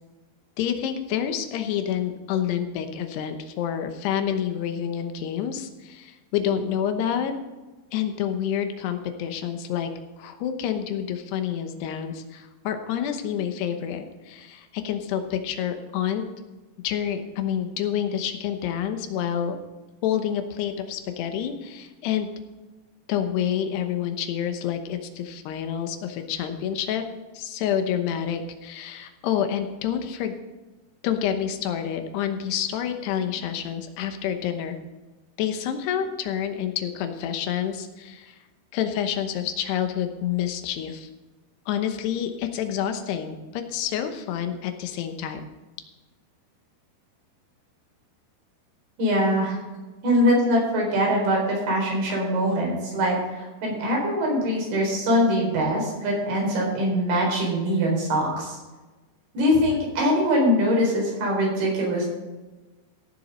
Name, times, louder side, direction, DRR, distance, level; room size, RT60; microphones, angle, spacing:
voice 1, 0.6-7.3 7.9-9.9 10.2-16.2 16.8-19.6 20.0-22.3 23.1-27.0 27.3-30.3 31.0-34.8 35.4-38.4 38.7-41.1 41.7-45.4, left 9 dB, 85° left, 7 dB, 3.2 m, -28 dB
voice 2, 49.0-49.6 50.0-58.6 59.3-62.1, equal, 70° right, -2 dB, 6.1 m, -23 dB
15.5 x 7.3 x 5.3 m, 1.2 s
omnidirectional pair, 4.7 m